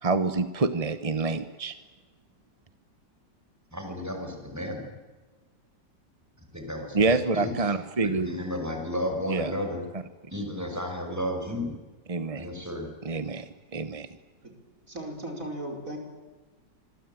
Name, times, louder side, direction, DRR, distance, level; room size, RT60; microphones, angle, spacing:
voice 1, 0.0-1.8 6.9-8.3 9.3-9.5 9.9-10.0 12.1-12.5 13.0-14.2, right 3 dB, 25° right, 11 dB, 0.8 m, -27 dB
voice 2, 3.7-4.9 6.5-7.0 7.3-7.5 8.0-9.8 10.3-11.7 12.4-12.9, left 1 dB, 10° right, 4 dB, 5.7 m, -32 dB
voice 3, 14.9-16.0, right 1 dB, 45° right, 3 dB, 5.7 m, -36 dB
26.0 x 23.0 x 9.2 m, 1.3 s
omnidirectional pair, 2.0 m